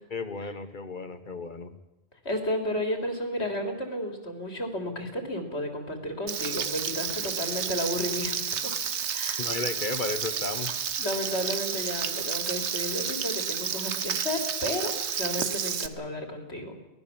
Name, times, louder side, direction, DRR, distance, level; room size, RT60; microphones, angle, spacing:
voice 1, 0.1-1.8 7.2-7.3 9.4-10.8, left 3 dB, 45° left, 10 dB, 1.6 m, -34 dB
voice 2, 2.3-8.8 9.1-9.5 11.0-16.8, equal, 75° left, 5 dB, 3.5 m, -32 dB
Frying (food), 6.3-15.9, right 7 dB, 85° right, 1.4 m, -31 dB
23.5 x 19.0 x 7.3 m, 0.95 s
omnidirectional pair, 1.1 m